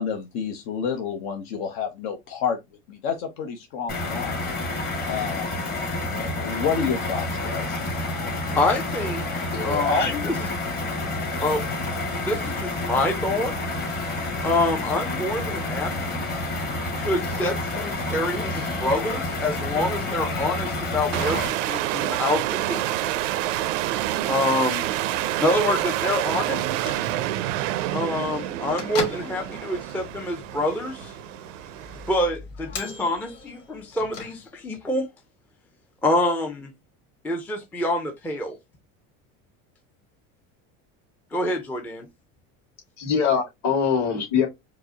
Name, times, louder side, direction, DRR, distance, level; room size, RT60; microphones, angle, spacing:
voice 1, 0.0-2.6 2.9-4.4 5.1-5.5 5.9-7.8, left 7 dB, 70° left, 0.8 m, -29 dB
sound 1, 3.9-21.5, left 2 dB, 25° left, 1.2 m, -29 dB
voice 2, 8.5-10.5 11.4-11.6 12.3-13.6 14.4-16.2 17.0-22.8 24.3-24.8 25.4-26.7 27.9-31.1 32.1-35.1 36.0-36.7 37.2-38.6 41.3-42.1, left 1 dB, 5° left, 0.4 m, -26 dB
voice 3, 9.5-10.1 43.0-44.5, left 6 dB, 45° left, 2.1 m, -23 dB
sound 2, 21.1-32.2, right 14 dB, 90° right, 0.5 m, -28 dB
Bell / Microwave oven, 26.6-34.8, left 4 dB, 90° left, 1.3 m, -39 dB
4.7 x 2.0 x 2.6 m
supercardioid pair, 125°, 36 cm